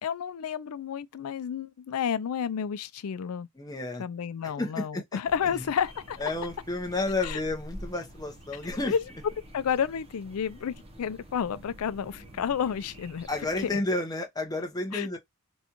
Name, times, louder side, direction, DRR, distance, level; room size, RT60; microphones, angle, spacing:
voice 1, 0.0-3.5 4.0-6.2 7.2-7.4 8.9-9.0 9.5-13.3 13.7-13.8 14.9-15.1, left 7 dB, 75° left, 0.4 m, -31 dB
voice 2, 3.6-4.0 4.4-5.0 5.5-5.6 6.2-8.9 13.3-15.2, left 2 dB, 20° left, 0.7 m, -31 dB
sound 1, 5.3-13.8, equal, 25° right, 0.7 m, -47 dB
4.1 x 2.3 x 2.9 m
head